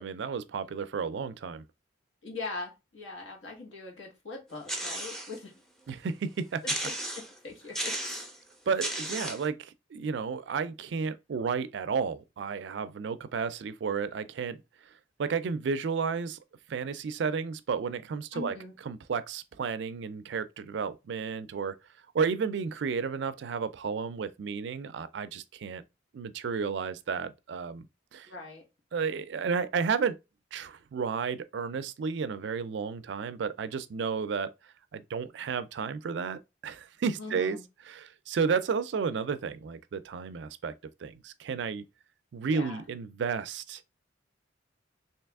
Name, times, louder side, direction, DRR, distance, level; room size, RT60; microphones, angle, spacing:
voice 1, 0.0-1.6 5.9-6.6 8.7-14.6 15.2-16.4 16.7-18.5 18.9-21.8 22.1-25.8 26.1-27.9 28.1-28.3 28.9-30.2 30.5-34.5 34.9-37.6 37.9-40.7 41.0-41.8 42.3-44.0, right 5 dB, 60° right, 0.3 m, -32 dB
voice 2, 2.2-5.5 6.6-6.7 7.1-7.9 18.3-18.7 28.3-28.6 37.2-37.6 42.4-42.8, left 3 dB, 85° left, 1.6 m, -41 dB
sound 1, 4.7-5.4 5.9-6.0 6.6-7.4 7.7-8.4 8.8-9.5, right 1 dB, 5° left, 0.5 m, -34 dB
3.2 x 2.8 x 3.4 m
head